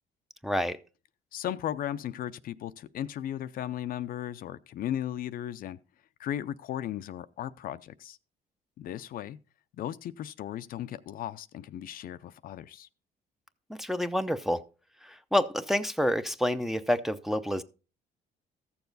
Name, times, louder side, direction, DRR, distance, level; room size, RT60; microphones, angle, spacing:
voice 1, 0.4-0.8 13.7-14.6 15.0-17.6, left 1 dB, ahead, 0.6 m, -28 dB
voice 2, 1.3-5.8 6.2-8.2 8.8-9.4 9.8-12.9, left 11 dB, 60° left, 0.5 m, -36 dB
14.0 x 7.0 x 4.0 m
cardioid pair, 110°, 17 cm